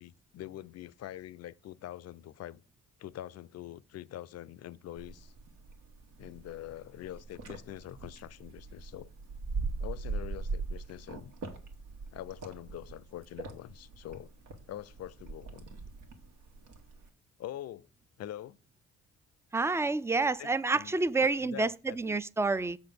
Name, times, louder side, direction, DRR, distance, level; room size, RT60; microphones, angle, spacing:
voice 1, 0.0-2.6 3.0-5.3 6.2-9.1 9.8-11.3 12.1-14.3 14.7-15.7 17.4-17.9 18.2-18.6 20.4-22.2, left 12 dB, 55° left, 0.5 m, -44 dB
sound 1, 5.0-17.1, right 3 dB, 80° right, 1.6 m, -41 dB
voice 2, 19.5-22.8, right 3 dB, 10° right, 0.3 m, -29 dB
7.1 x 4.1 x 6.6 m
cardioid pair, 90°, 30 cm